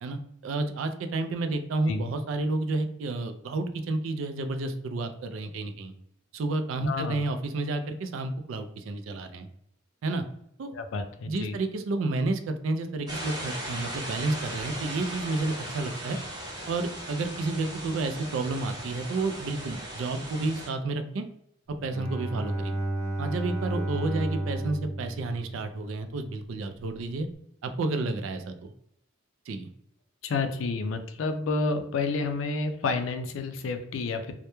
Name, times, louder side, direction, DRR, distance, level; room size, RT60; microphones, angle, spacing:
voice 1, 0.0-5.9 6.3-9.5 10.0-10.2 10.6-10.7 11.2-16.2 16.7-21.2 21.8-22.7 23.2-27.3 27.6-28.7 29.5-29.7, right 2 dB, 70° right, 8 dB, 0.3 m, -30 dB
voice 2, 6.8-7.2 10.7-11.6 30.2-34.3, left 3 dB, 70° left, 7 dB, 0.4 m, -30 dB
sound 1, 13.1-20.7, right 1 dB, 20° right, 0.7 m, -38 dB
Bowed string instrument, 21.8-26.3, right 1 dB, 15° left, 0.8 m, -32 dB
2.2 x 2.1 x 2.9 m, 0.73 s
head